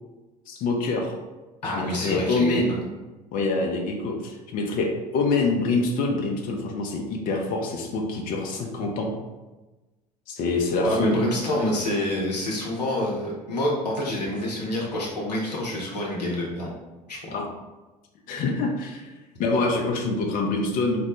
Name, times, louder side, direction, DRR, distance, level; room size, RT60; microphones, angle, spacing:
voice 1, 0.5-1.1 1.6-2.8 3.3-9.1 10.3-11.2 17.3-17.5 18.3-19.1 19.4-21.0, left 3 dB, 45° left, 1 dB, 0.6 m, -25 dB
voice 2, 1.6-2.8 10.8-16.7 17.1-17.2, left 1 dB, 85° left, -4 dB, 0.7 m, -27 dB
4.2 x 2.1 x 3.0 m, 1.2 s
figure-of-eight pair, 65°, 20 cm